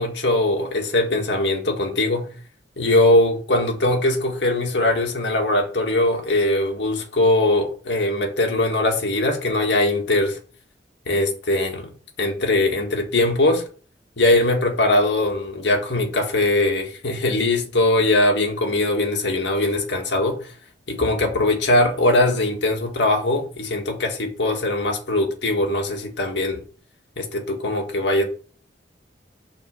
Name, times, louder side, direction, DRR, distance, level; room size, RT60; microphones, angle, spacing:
voice 1, 0.0-2.3 2.8-10.4 11.0-11.9 12.2-13.6 14.2-20.4 20.9-26.6 27.2-28.2, left 2 dB, 75° left, 1.9 m, -21 dB
6.0 x 4.4 x 6.5 m
head